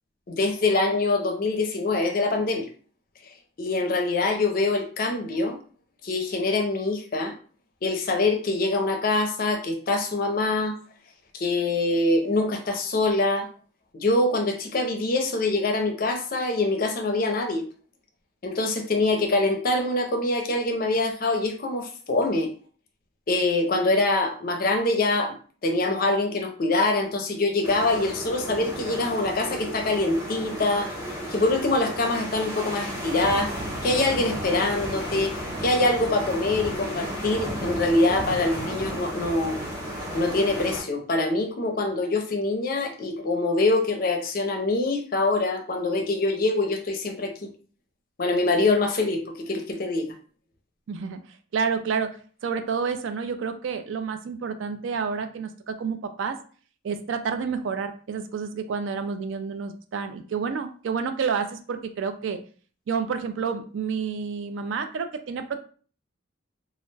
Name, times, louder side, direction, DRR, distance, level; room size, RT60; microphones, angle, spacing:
voice 1, 0.3-2.7 3.6-5.6 6.0-7.3 7.8-10.7 11.3-13.5 13.9-17.6 18.4-22.5 23.3-25.3 25.6-33.5 33.8-35.3 35.6-39.6 40.1-47.5 48.2-50.1, left 2 dB, 45° left, 4 dB, 0.5 m, -24 dB
sound 1, 27.6-40.8, equal, 15° right, 0.9 m, -33 dB
voice 2, 50.9-51.2 51.5-52.2 52.4-56.4 56.8-62.4 62.9-65.6, right 5 dB, 70° right, 8 dB, 0.3 m, -29 dB
2.3 x 2.1 x 3.2 m, 0.42 s
head